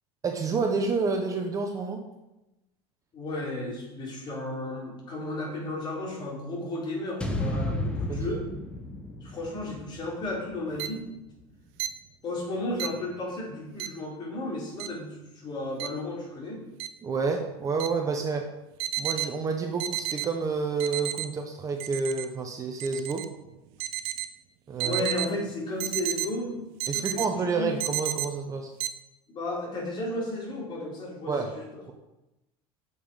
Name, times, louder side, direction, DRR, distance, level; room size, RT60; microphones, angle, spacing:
voice 1, 0.2-2.0 8.1-8.4 17.0-18.5 19.0-23.3 24.7-25.1 26.9-28.7 31.3-31.5, right 4 dB, 25° right, 3 dB, 1.0 m, -29 dB
voice 2, 3.1-8.4 9.2-11.0 12.2-16.6 24.8-26.6 26.9-27.2 27.5-27.8 29.3-31.6, left 2 dB, 35° left, -3 dB, 4.2 m, -33 dB
sound 1, 7.2-11.4, left 1 dB, 5° left, 1.2 m, -33 dB
sound 2, 10.8-10.9 11.8-11.9 12.8-12.9 13.8-13.9 14.8-14.9 15.8-15.9 16.8-16.9 17.8-17.9 18.8-19.3 19.8-20.3 20.8-21.3 21.8-22.3 22.8-23.2 23.8-24.3 24.8-25.3 25.8-26.3 26.8-27.3 27.8-28.3 28.8-28.9, right 15 dB, 70° right, 0.8 m, -30 dB
8.4 x 7.2 x 5.8 m, 0.95 s
supercardioid pair, 135°, 14 cm